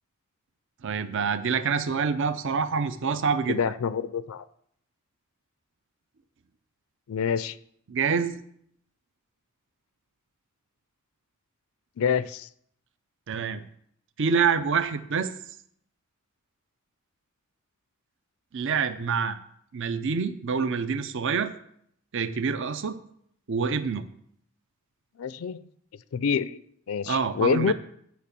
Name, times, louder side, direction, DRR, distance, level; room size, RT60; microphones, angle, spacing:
voice 1, 0.8-3.6 7.9-8.4 13.3-13.6 14.2-15.3 18.5-19.4 19.7-21.5 22.1-23.0 23.5-24.1 27.1-27.7, right 5 dB, 60° right, 12 dB, 0.6 m, -26 dB
voice 2, 3.5-4.5 7.1-7.6 12.0-12.5 25.2-25.6 26.1-26.6 26.9-27.7, left 6 dB, 75° left, 16 dB, 0.4 m, -26 dB
9.4 x 5.7 x 6.8 m, 0.68 s
head